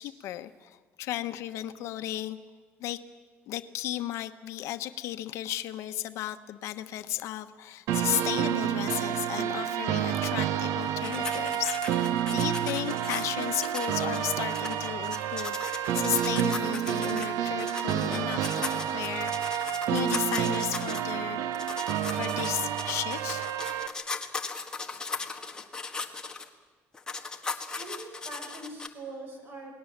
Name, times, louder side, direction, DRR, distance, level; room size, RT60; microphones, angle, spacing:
voice 1, 0.0-2.4 2.8-3.0 3.5-21.8 22.2-23.4 24.9-25.4 27.4-27.8, left 13 dB, 75° left, 10 dB, 1.1 m, -35 dB
sound 1, 7.9-23.9, right 10 dB, 85° right, 1.3 m, -29 dB
sound 2, 11.0-17.3 17.6-21.1 21.5-26.5 26.9-28.9, left 4 dB, 15° left, 1.6 m, -38 dB
voice 2, 27.8-29.7, right 2 dB, 45° right, 3 dB, 6.1 m, -42 dB
28.0 x 20.0 x 7.4 m, 1.3 s
cardioid pair, 145°, 5 cm